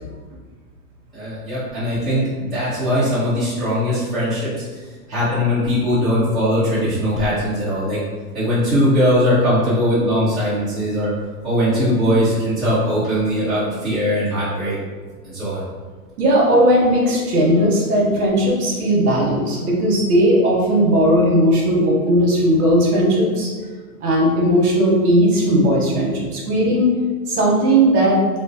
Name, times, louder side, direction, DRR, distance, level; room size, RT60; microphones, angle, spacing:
voice 1, 1.1-4.5 5.1-8.0 8.3-11.1 11.4-14.8 15.2-15.6, equal, ahead, -17 dB, 0.8 m, -20 dB
voice 2, 16.2-23.5 24.0-26.9 27.3-28.2, equal, 65° right, -3 dB, 1.1 m, -17 dB
3.7 x 2.1 x 2.7 m, 1.4 s
hypercardioid pair, 155°, 48 cm